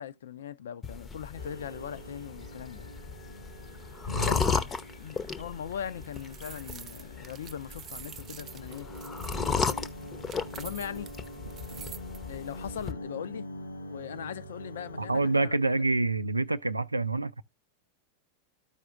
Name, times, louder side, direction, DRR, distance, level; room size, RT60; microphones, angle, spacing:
voice 1, 0.0-2.9 4.3-8.9 9.5-9.8 10.5-11.1 12.3-13.5 13.9-15.8, left 9 dB, 60° left, 0.5 m, -40 dB
sound 1, 0.8-12.9, left 5 dB, 20° left, 0.7 m, -35 dB
sound 2, 1.4-15.3, equal, 75° left, 1.4 m, -45 dB
voice 2, 4.1-4.4 11.7-11.8 15.0-17.4, right 2 dB, 85° right, 0.4 m, -27 dB
sound 3, 5.9-12.2, right 8 dB, 30° right, 0.4 m, -47 dB
13.5 x 4.9 x 2.4 m
figure-of-eight pair, 90°, 0 cm